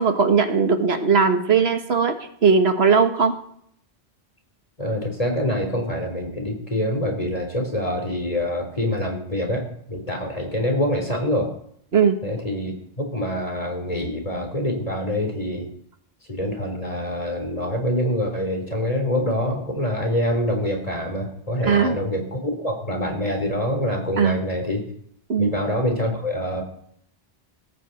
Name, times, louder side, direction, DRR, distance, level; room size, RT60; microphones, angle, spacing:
voice 1, 0.0-2.2 2.4-3.3 11.9-12.2 21.6-22.0 24.2-24.4 25.3-25.5, right 5 dB, 85° right, 7 dB, 1.7 m, -18 dB
voice 2, 4.8-11.5 12.2-15.7 16.3-24.9 25.4-26.6, left 1 dB, 35° left, 2 dB, 3.9 m, -25 dB
17.5 x 15.5 x 4.2 m, 0.66 s
omnidirectional pair, 1.0 m